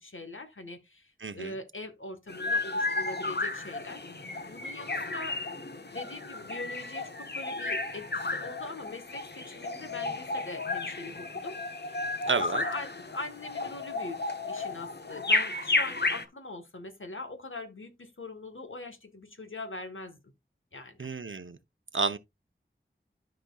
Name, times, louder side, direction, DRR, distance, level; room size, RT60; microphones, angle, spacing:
voice 1, 0.0-5.4 5.9-20.3 20.7-21.1, left 2 dB, 80° left, 1.6 m, -42 dB
voice 2, 1.2-1.5 12.3-12.6 21.0-21.6 21.9-22.2, right 4 dB, 75° right, 0.8 m, -30 dB
sound 1, 2.3-16.2, left 3 dB, 55° left, 1.0 m, -33 dB
13.0 x 5.1 x 2.4 m
wide cardioid pair, 45°, 20 cm